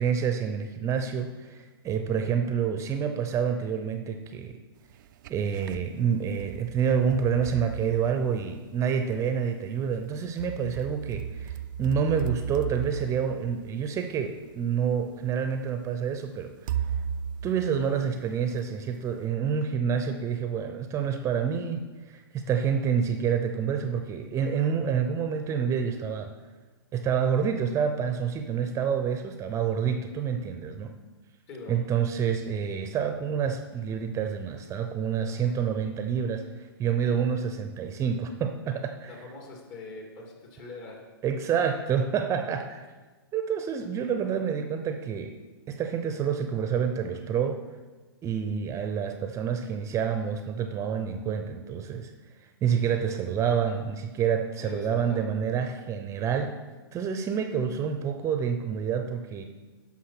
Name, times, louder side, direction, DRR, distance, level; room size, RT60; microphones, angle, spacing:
voice 1, 0.0-4.6 5.3-16.7 17.4-26.3 26.9-30.9 31.7-39.1 41.2-42.9 43.3-45.3 45.7-47.6 48.2-52.1 52.6-56.6 56.9-59.4, right 7 dB, 20° right, 7 dB, 0.7 m, -28 dB
sound 1, 4.9-5.9 6.4-8.8 10.0-14.4 15.2-15.3 16.7-18.6, right 8 dB, 50° right, 0.4 m, -36 dB
voice 2, 31.5-31.8 35.2-35.4 39.1-41.1 54.6-55.2, left 3 dB, 45° left, 0 dB, 3.0 m, -43 dB
10.0 x 6.0 x 6.0 m, 1.3 s
hypercardioid pair, 120°, 13 cm